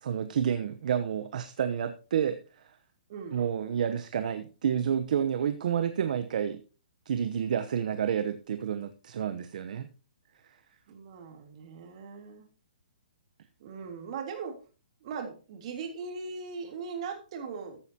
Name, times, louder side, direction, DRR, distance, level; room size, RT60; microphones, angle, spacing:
voice 1, 0.0-2.4 3.3-6.6 7.1-9.9, right 8 dB, 60° right, 9 dB, 0.9 m, -29 dB
voice 2, 3.1-3.4 10.9-12.5 13.6-14.6 15.0-17.8, right 5 dB, 45° right, 4 dB, 3.3 m, -39 dB
14.5 x 9.7 x 2.9 m, 0.35 s
hypercardioid pair, 155°, 5 cm